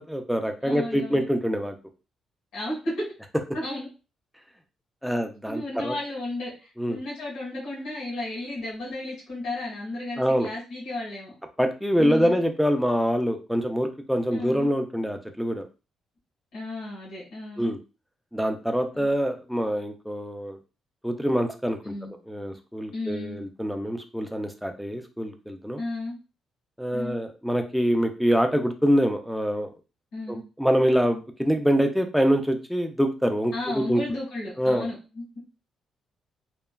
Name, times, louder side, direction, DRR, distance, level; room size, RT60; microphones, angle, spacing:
voice 1, 0.1-1.7 5.0-5.9 6.8-7.0 10.2-10.5 11.6-15.7 17.6-17.8 18.3-20.6 21.0-21.9 22.3-25.8 26.8-29.7 30.3-34.0 34.6-34.9, equal, ahead, 6 dB, 0.4 m, -25 dB
voice 2, 0.6-1.2 2.5-2.9 3.5-3.9 5.5-11.3 12.0-12.3 14.3-14.7 16.5-17.7 18.9-19.1 21.8-22.1 22.9-23.4 25.8-26.2 26.9-27.2 30.1-30.4 33.5-35.2, left 2 dB, 80° left, -5 dB, 1.4 m, -33 dB
3.0 x 2.2 x 2.2 m, 0.32 s
cardioid pair, 90°, 0 cm